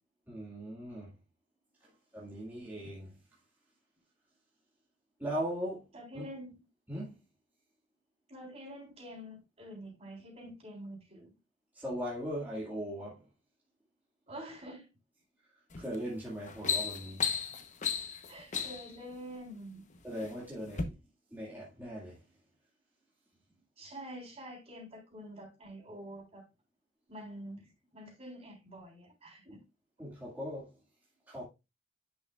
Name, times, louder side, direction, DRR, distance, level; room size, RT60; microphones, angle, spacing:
voice 1, 0.3-1.1 1.8-3.1 5.2-5.8 6.1-6.3 6.9-7.2 11.7-13.2 15.8-17.3 20.0-20.9 21.3-22.2 30.0-30.7 31.3-31.4, equal, 10° right, 2.1 m, -39 dB
voice 2, 5.9-6.5 8.3-11.3 14.3-14.9 18.3-19.8 23.8-26.4 27.1-29.6, equal, 35° right, 3.8 m, -47 dB
sound 1, 15.7-16.0 16.3-19.0 19.8-20.3 20.7-20.8, left 6 dB, 40° left, 1.0 m, -34 dB
10.0 x 6.2 x 2.4 m
head